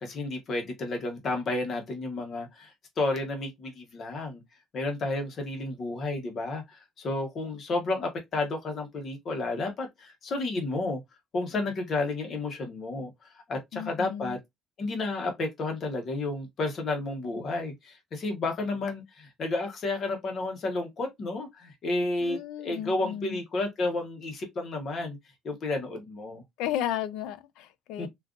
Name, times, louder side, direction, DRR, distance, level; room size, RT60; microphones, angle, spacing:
voice 1, 0.0-4.4 4.7-11.0 11.3-13.1 13.5-14.4 14.8-25.2 25.4-26.4 28.0-28.1, left 2 dB, 35° left, 0.9 m, -31 dB
voice 2, 13.7-14.3 22.2-23.4 26.6-28.1, left 11 dB, 90° left, 0.4 m, -34 dB
3.7 x 2.4 x 2.4 m
cardioid pair, 175°, 0 cm